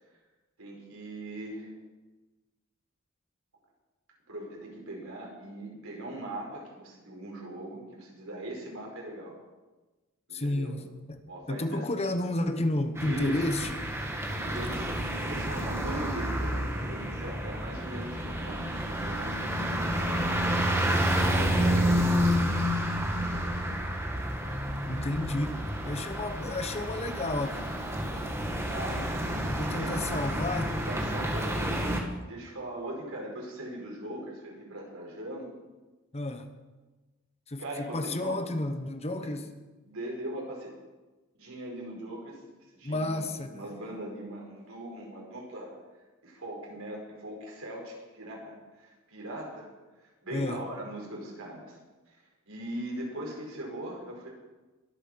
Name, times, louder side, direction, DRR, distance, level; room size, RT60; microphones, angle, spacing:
voice 1, 0.6-1.7 4.3-9.3 10.3-10.7 11.3-11.9 13.0-13.4 14.4-22.3 22.8-23.6 28.7-29.1 29.7-30.2 30.8-31.9 32.3-35.5 37.6-38.4 39.1-39.3 39.8-40.7 41.3-42.4 42.7-45.8 46.2-49.7 50.0-51.8 52.5-54.3, right 1 dB, 85° right, -1 dB, 5.0 m, -40 dB
voice 2, 10.3-11.2 11.5-13.9 24.9-27.8 29.4-30.8 36.1-36.5 37.5-39.5 42.8-43.7 50.3-50.6, left 1 dB, 30° left, 8 dB, 1.1 m, -31 dB
sound 1, 13.0-32.0, equal, 15° right, 1.8 m, -30 dB
22.0 x 8.2 x 5.8 m, 1.2 s
head